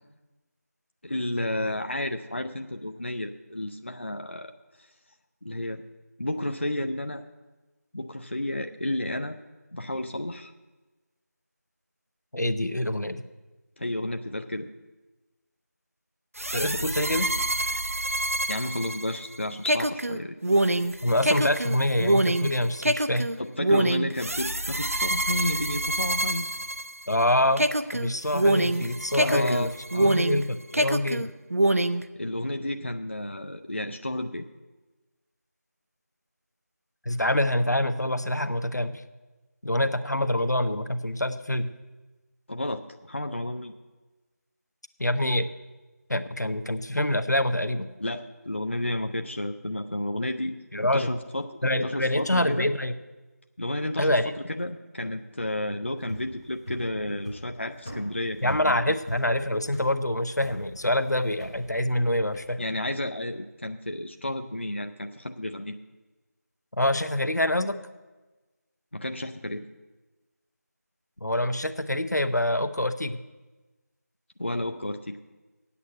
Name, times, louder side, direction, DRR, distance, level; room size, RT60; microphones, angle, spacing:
voice 1, 1.0-4.5 4.8-4.9 5.4-5.8 6.2-7.2 7.9-9.4 9.7-10.5 13.8-14.7 18.5-20.4 23.4-26.5 29.2-30.2 32.2-34.4 42.5-43.7 48.0-50.6 50.9-52.7 53.6-54.1 54.6-58.8 62.6-65.8 68.9-69.7 74.4-75.2, left 1 dB, 45° left, 5 dB, 0.5 m, -31 dB
voice 2, 12.3-13.2 16.5-17.3 21.0-23.3 27.1-27.6 27.9-29.7 30.0-31.3 37.1-38.9 39.6-41.7 45.0-45.5 46.1-47.9 50.7-51.1 51.6-52.9 54.0-54.3 58.4-62.6 66.8-67.8 71.2-73.2, left 1 dB, 85° left, 9 dB, 0.8 m, -25 dB
sound 1, 16.4-27.2 27.6-30.4 30.7-32.0, right 1 dB, 55° right, 0.5 m, -26 dB
sound 2, 56.0-62.5, equal, 20° left, 0.9 m, -42 dB
8.4 x 8.3 x 7.6 m, 1.2 s
figure-of-eight pair, 175°, 9 cm